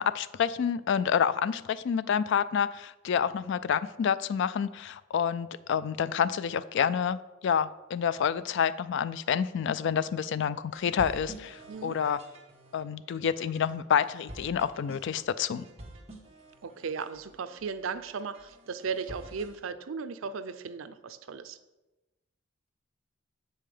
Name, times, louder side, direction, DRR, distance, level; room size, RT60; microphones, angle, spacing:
voice 1, 0.0-12.2 12.7-15.7, left 7 dB, 60° left, 16 dB, 0.3 m, -28 dB
sound 1, 10.7-19.6, right 1 dB, 30° right, 1.3 m, -49 dB
voice 2, 16.6-21.6, right 5 dB, 80° right, 12 dB, 0.5 m, -36 dB
7.6 x 5.6 x 4.9 m, 1.0 s
head